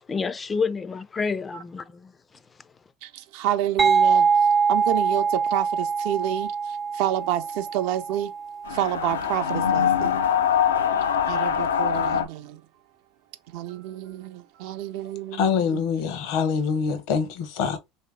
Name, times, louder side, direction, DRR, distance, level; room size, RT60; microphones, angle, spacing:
voice 1, 0.1-2.1, left 5 dB, 30° left, 0.4 m, -28 dB
voice 2, 3.0-4.3 4.7-6.5 6.9-8.3 8.7-10.2 11.3-12.6 13.5-15.8, right 12 dB, 70° right, 0.6 m, -29 dB
sound 1, 3.8-9.3, right 5 dB, 25° right, 0.5 m, -23 dB
sound 2, 8.7-12.2, left 8 dB, 90° left, 0.4 m, -23 dB
voice 3, 15.3-17.8, left 6 dB, 70° left, 0.8 m, -25 dB
3.2 x 2.8 x 3.3 m
hypercardioid pair, 75°, 0 cm